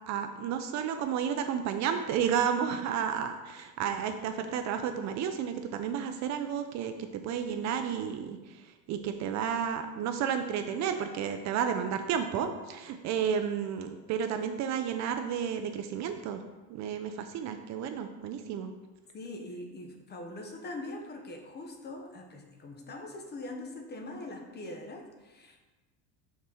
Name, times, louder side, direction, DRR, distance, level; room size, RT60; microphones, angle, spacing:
voice 1, 0.1-16.4 16.7-18.7, right 8 dB, 45° right, 7 dB, 0.5 m, -32 dB
voice 2, 19.1-25.6, left 2 dB, 25° left, 3 dB, 1.0 m, -42 dB
5.9 x 4.2 x 6.3 m, 1.2 s
cardioid pair, 140°, 40 cm